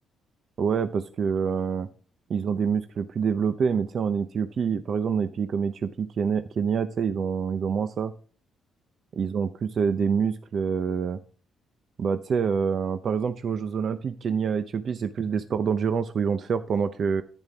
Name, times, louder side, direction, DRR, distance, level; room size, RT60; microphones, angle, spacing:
voice 1, 0.6-1.9 2.3-8.1 9.2-11.2 12.0-17.2, right 6 dB, 55° right, 10 dB, 0.7 m, -26 dB
10.5 x 9.2 x 3.5 m, 0.39 s
cardioid pair, 90°, 0 cm